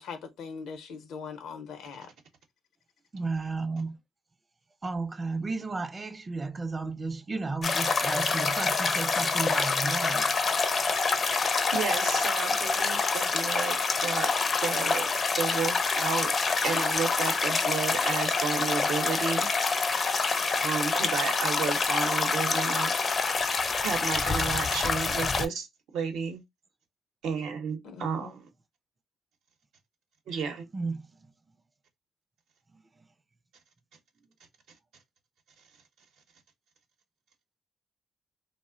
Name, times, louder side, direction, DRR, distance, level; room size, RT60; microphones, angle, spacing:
voice 1, 0.0-2.1 27.8-28.4, left 5 dB, 80° left, 0.6 m, -41 dB
voice 2, 3.1-4.0 4.8-10.4 30.7-31.3 32.7-33.1, right 3 dB, 25° right, 0.4 m, -33 dB
sound 1, 7.6-25.5, left 4 dB, 40° left, 0.4 m, -26 dB
voice 3, 11.3-14.3 14.6-15.1 15.4-16.3 16.6-19.5 20.6-22.9 23.8-25.7 25.9-26.4 27.2-28.5 30.3-30.7, right 6 dB, 80° right, 0.7 m, -32 dB
2.4 x 2.0 x 3.6 m
cardioid pair, 90°, 0 cm